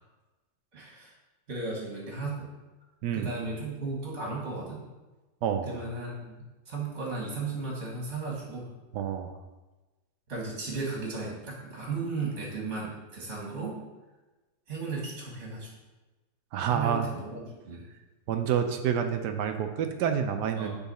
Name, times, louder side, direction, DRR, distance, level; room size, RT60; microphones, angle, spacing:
voice 1, 0.7-1.1 1.5-2.5 3.1-4.8 5.6-8.7 10.3-13.8 14.7-15.7 16.6-17.8 20.6-20.8, right 3 dB, 40° right, -3 dB, 1.8 m, -35 dB
voice 2, 5.4-5.7 8.9-9.3 16.5-17.1 18.3-20.8, right 8 dB, 70° right, 6 dB, 1.2 m, -28 dB
9.4 x 4.0 x 4.2 m, 1.2 s
omnidirectional pair, 2.0 m